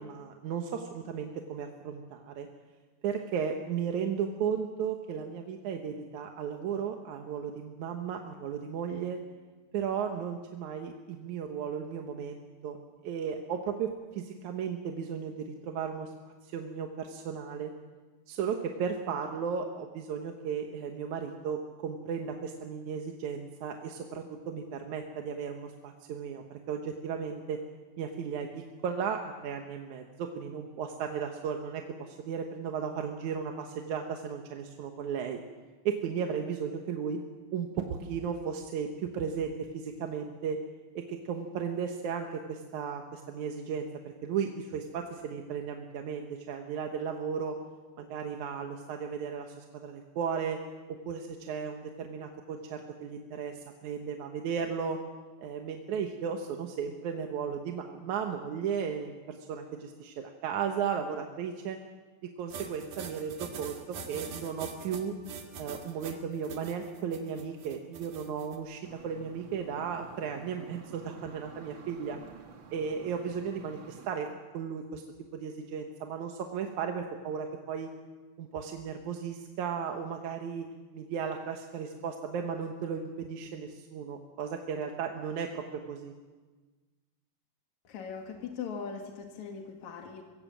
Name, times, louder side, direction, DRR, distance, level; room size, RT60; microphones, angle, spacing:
voice 1, 0.0-2.5 3.0-9.2 9.7-12.8 13.0-16.1 16.4-17.7 18.3-27.6 28.0-35.4 35.9-37.2 37.5-40.6 41.0-47.6 48.0-50.6 51.1-55.0 55.4-61.8 62.4-65.1 65.6-72.2 72.7-74.3 74.5-75.0 75.3-77.9 78.4-80.7 80.9-86.1, right 7 dB, 70° right, 3 dB, 2.5 m, -35 dB
sound 1, 62.5-68.6, right 6 dB, 90° right, 3.4 m, -43 dB
sound 2, 68.8-74.1, right 6 dB, 50° right, 1.7 m, -51 dB
voice 2, 87.8-90.2, left 6 dB, 65° left, 2 dB, 3.0 m, -40 dB
23.5 x 16.5 x 7.4 m, 1.3 s
omnidirectional pair, 3.6 m